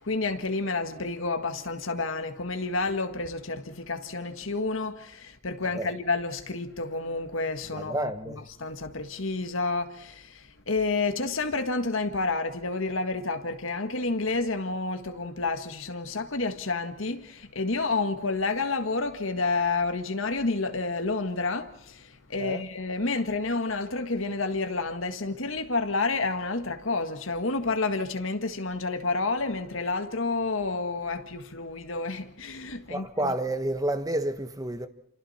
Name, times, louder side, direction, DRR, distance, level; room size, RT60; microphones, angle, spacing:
voice 1, 0.0-33.3, left 3 dB, 80° left, 1.9 m, -30 dB
voice 2, 7.7-8.4 22.4-22.6 32.9-34.9, right 1 dB, 15° right, 1.2 m, -30 dB
28.0 x 27.0 x 4.4 m
head